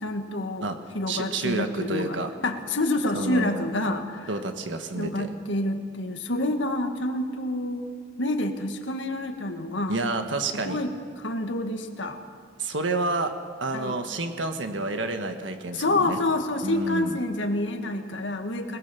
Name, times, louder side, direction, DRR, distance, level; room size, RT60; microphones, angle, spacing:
voice 1, 0.0-0.7 0.9-2.2 2.4-4.3 4.9-7.8 8.2-10.0 10.7-12.2 13.7-14.0 15.7-18.8, left 2 dB, 75° left, 5 dB, 1.8 m, -28 dB
voice 2, 1.1-2.3 3.1-3.7 4.3-5.3 9.9-10.8 12.6-13.3 13.6-16.2 16.6-17.2, right 2 dB, 75° right, 7 dB, 1.5 m, -29 dB
21.0 x 18.5 x 7.1 m, 2.5 s
head